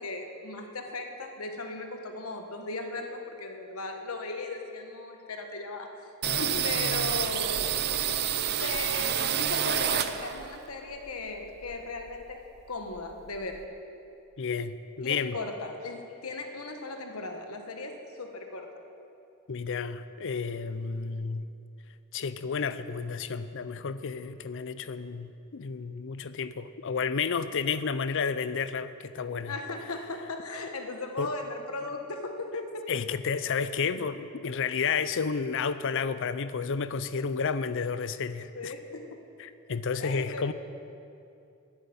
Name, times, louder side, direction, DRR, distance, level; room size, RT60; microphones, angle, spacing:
voice 1, 0.0-6.1 6.4-7.7 8.6-13.7 15.0-18.7 29.5-32.9 38.5-39.2 40.0-40.5, left 2 dB, 85° left, 4 dB, 1.4 m, -37 dB
sound 1, 6.2-10.6 10.9-12.3 12.6-12.7 12.9-13.7, right 9 dB, 50° right, 0.6 m, -29 dB
voice 2, 6.3-7.1 8.6-8.7 14.4-15.4 19.5-21.5 22.1-29.5 31.2-31.3 32.9-38.7 39.4-40.5, left 5 dB, 60° left, 13 dB, 0.6 m, -31 dB
10.5 x 9.7 x 8.9 m, 2.7 s
head